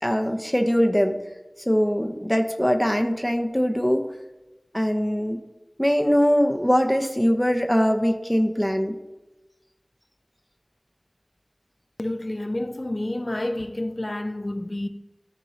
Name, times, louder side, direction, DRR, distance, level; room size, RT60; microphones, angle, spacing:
voice 1, 0.0-1.2 1.7-4.0 4.7-5.4 5.8-9.0, equal, 5° left, 0.8 m, -22 dB
voice 2, 12.0-14.9, left 1 dB, 45° left, 0.5 m, -29 dB
13.5 x 4.5 x 2.8 m
wide cardioid pair, 45°, 0 cm